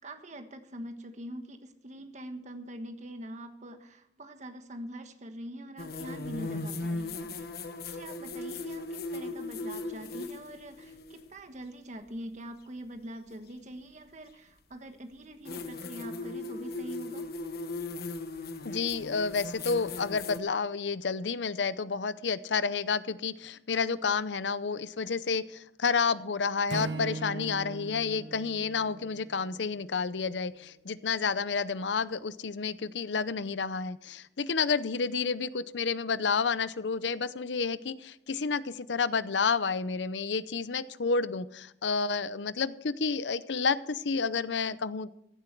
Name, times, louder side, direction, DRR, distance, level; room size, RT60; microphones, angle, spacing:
voice 1, 0.0-17.2, right 1 dB, 40° right, 6 dB, 1.4 m, -44 dB
sound 1, 5.8-11.3 13.3-13.4 15.5-20.4, left 2 dB, 60° left, 1.2 m, -38 dB
voice 2, 18.6-45.1, left 5 dB, 80° left, 16 dB, 0.7 m, -30 dB
Acoustic guitar / Strum, 26.7-30.0, right 3 dB, 80° right, 1.2 m, -39 dB
15.5 x 12.0 x 4.6 m, 0.78 s
head